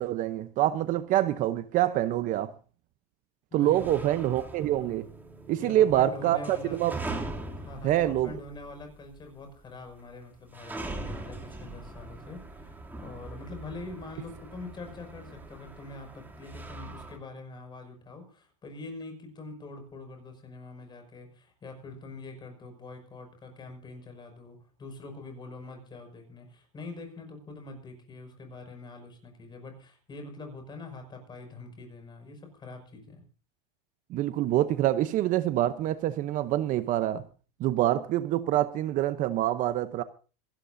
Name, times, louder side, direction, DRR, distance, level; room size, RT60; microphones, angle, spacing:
voice 1, 0.0-2.5 3.5-5.1 5.5-6.9 7.8-8.3 34.1-37.2 37.6-40.0, right 13 dB, 45° right, 0.8 m, -26 dB
voice 2, 3.5-4.1 5.6-6.8 7.6-33.2, left 3 dB, 25° left, 6.0 m, -44 dB
sound 1, 3.7-9.3 9.5-9.6 10.3-17.2, right 2 dB, 10° right, 2.7 m, -41 dB
26.5 x 12.5 x 2.7 m
supercardioid pair, 135°, 19 cm